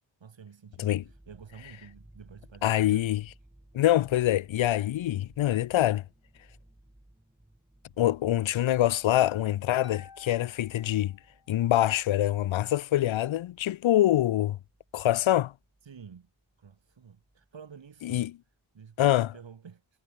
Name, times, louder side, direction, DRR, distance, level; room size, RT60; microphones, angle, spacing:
voice 1, 0.2-3.3 15.8-16.3 16.6-20.0, right 6 dB, 70° right, 5.7 m, -50 dB
sound 1, 1.0-18.0 18.3-18.6, right 1 dB, 10° right, 7.7 m, -60 dB
voice 2, 2.6-3.2 3.7-6.0 8.0-11.1 11.5-14.6 14.9-15.5 18.1-18.3 19.0-19.3, left 13 dB, 80° left, 0.6 m, -25 dB
Harp, 9.8-11.7, left 5 dB, 50° left, 6.3 m, -52 dB
wide cardioid pair, 115°, 47 cm